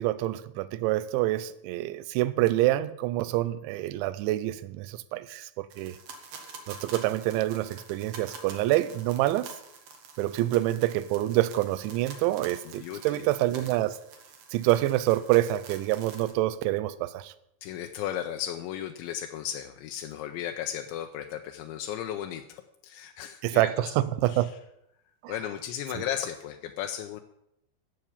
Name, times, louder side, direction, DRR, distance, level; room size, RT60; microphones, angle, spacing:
voice 1, 0.0-6.0 6.7-9.5 10.2-14.0 14.5-17.3 23.4-24.5 25.2-25.3 26.0-26.1, right 15 dB, 80° right, 16 dB, 2.9 m, -27 dB
sound 1, 5.7-16.3, right 4 dB, 60° right, 2.7 m, -47 dB
voice 2, 12.7-13.3 17.6-23.7 24.3-24.5 25.3-27.2, left 10 dB, 85° left, 5 dB, 2.8 m, -35 dB
14.5 x 6.0 x 8.7 m, 0.79 s
omnidirectional pair, 5.5 m